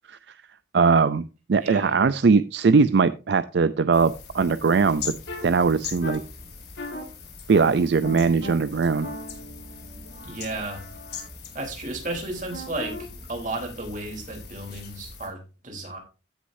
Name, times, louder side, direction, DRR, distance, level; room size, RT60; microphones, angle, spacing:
voice 1, 0.7-5.1 5.4-6.2 7.5-9.1, right 4 dB, 70° right, 14 dB, 0.5 m, -20 dB
voice 2, 1.6-2.0 10.2-10.8 11.5-16.0, right 2 dB, 45° right, 2 dB, 3.6 m, -33 dB
sound 1, 3.9-15.3, left 5 dB, 60° left, 3.6 m, -41 dB
sound 2, 5.3-5.4 6.0-6.2 6.8-7.0 7.5-7.7 8.0-8.5 9.0-11.3 12.5-13.0, left 1 dB, 85° left, 2.4 m, -37 dB
15.5 x 6.3 x 2.7 m, 0.31 s
head